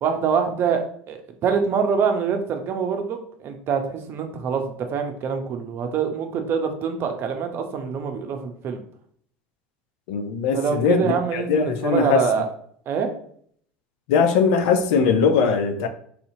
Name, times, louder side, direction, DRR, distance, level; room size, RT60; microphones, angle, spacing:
voice 1, 0.0-4.6 4.9-8.8 10.5-12.5 12.9-13.1, right 6 dB, 50° right, 5 dB, 0.7 m, -25 dB
voice 2, 10.1-12.3 14.1-15.9, left 5 dB, 70° left, 7 dB, 0.5 m, -20 dB
4.2 x 2.8 x 2.7 m, 0.62 s
hypercardioid pair, 80°, 5 cm